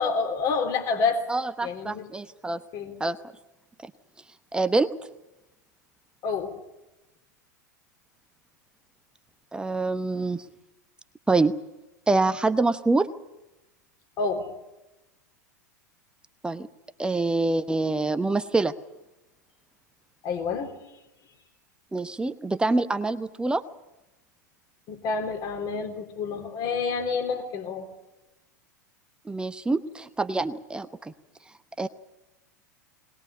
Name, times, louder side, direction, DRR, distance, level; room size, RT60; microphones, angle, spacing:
voice 1, 0.0-1.2 1.6-2.1 2.7-2.9 6.2-6.5 14.2-14.5 20.2-20.7 24.9-27.9, left 4 dB, 40° left, 5 dB, 3.7 m, -28 dB
voice 2, 1.3-2.6 3.0-3.2 4.5-4.9 9.5-10.4 11.3-11.5 12.1-13.1 16.4-16.7 17.0-18.7 21.9-23.6 29.3-31.1 31.8-31.9, right 3 dB, 10° right, 12 dB, 0.9 m, -25 dB
21.0 x 20.0 x 8.5 m, 1.0 s
figure-of-eight pair, 90°, 10 cm